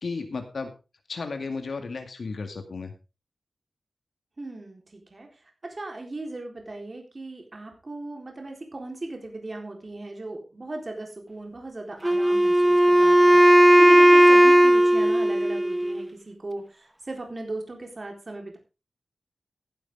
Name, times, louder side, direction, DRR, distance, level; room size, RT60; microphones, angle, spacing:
voice 1, 0.0-0.7 1.1-2.9, left 4 dB, 65° left, 6 dB, 2.2 m, -33 dB
voice 2, 4.4-5.3 5.6-13.4 13.8-18.6, right 2 dB, 35° right, 3 dB, 3.9 m, -37 dB
Wind instrument woodwind instrument, 12.0-16.1, equal, 5° right, 1.0 m, -16 dB
15.0 x 10.0 x 3.7 m, 0.30 s
wide cardioid pair, 125°, 0 cm